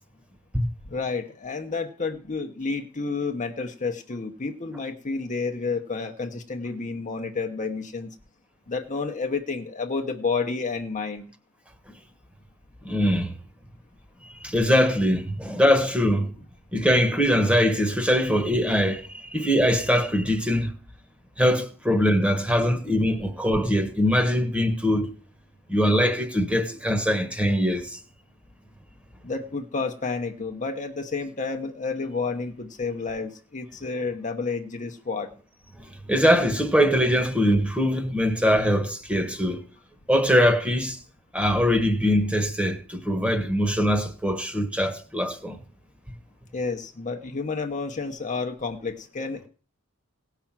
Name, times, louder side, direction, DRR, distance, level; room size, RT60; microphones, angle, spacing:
voice 1, 0.9-8.1 8.7-11.3 29.2-35.3 46.5-49.5, left 4 dB, 35° left, 1.0 m, -30 dB
voice 2, 12.8-13.3 14.2-16.3 16.7-20.7 21.4-25.1 25.7-28.0 36.1-39.7 40.1-41.0 41.3-45.6, equal, 5° right, 1.3 m, -22 dB
17.0 x 5.9 x 7.4 m
head